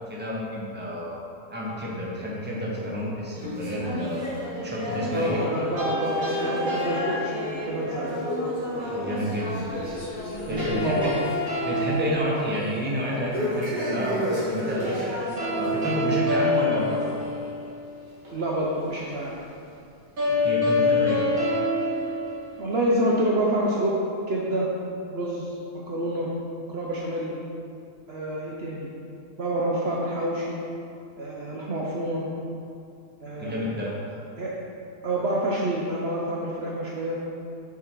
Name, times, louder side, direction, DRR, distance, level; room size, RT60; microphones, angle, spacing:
voice 1, 0.1-1.2 1.5-5.4 8.8-9.7 10.5-11.1 11.6-15.1 15.5-17.0 20.4-21.2 33.4-33.9, equal, 10° right, -5 dB, 1.0 m, -30 dB
sound 1, 3.3-10.9 11.2-11.5 11.9-12.0 13.3-16.0 16.4-16.6 17.3-17.4 18.2-18.3 19.1-19.2, equal, 30° right, 1.9 m, -31 dB
voice 2, 5.1-8.1 10.5-11.5 18.3-19.3 22.6-24.0 24.3-24.7 25.1-25.5 25.9-26.3 26.7-27.4 28.1-28.9 29.4-30.6 31.2-32.2 33.2-33.6 34.4-34.5 35.0-37.2, right 1 dB, 55° right, -4 dB, 0.9 m, -27 dB
sound 2, 5.8-7.9 10.6-13.0 15.4-17.9 20.2-23.0, left 2 dB, 70° right, 2.3 m, -27 dB
sound 3, 10.0-14.6 14.9-15.0 15.3-17.9, left 2 dB, 85° left, 1.3 m, -41 dB
6.8 x 5.0 x 4.5 m, 2.6 s
omnidirectional pair, 1.5 m